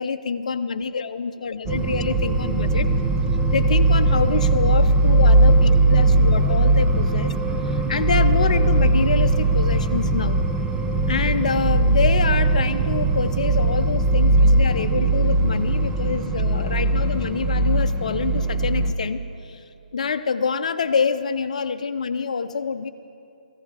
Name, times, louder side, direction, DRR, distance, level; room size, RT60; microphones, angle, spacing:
voice 1, 0.0-2.9 3.5-7.3 7.7-10.4 11.1-19.6 19.9-22.9, left 5 dB, 55° left, 8 dB, 0.6 m, -26 dB
sound 1, 1.7-18.9, right 2 dB, 15° right, 0.8 m, -19 dB
18.5 x 15.0 x 4.9 m, 2.6 s
figure-of-eight pair, 135°, 5 cm